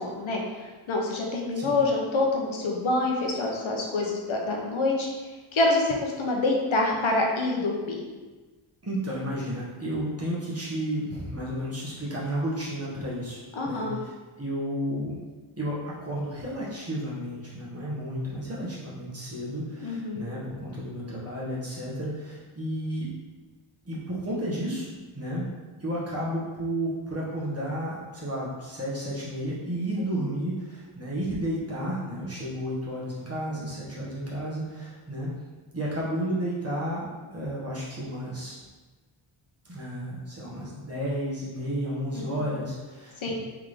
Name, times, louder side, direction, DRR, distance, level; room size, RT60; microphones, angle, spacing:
voice 1, 0.0-5.1 5.5-8.0 13.5-14.0 19.8-20.3 30.1-30.2 42.1-42.5 43.2-43.3, left 2 dB, 70° left, -1 dB, 0.9 m, -26 dB
voice 2, 8.8-14.1 14.4-15.2 15.6-23.1 23.8-24.9 25.1-25.5 25.8-35.3 35.7-38.6 39.6-43.3, equal, 30° right, -6 dB, 1.4 m, -32 dB
3.6 x 3.6 x 3.3 m, 1.3 s
wide cardioid pair, 85°, 49 cm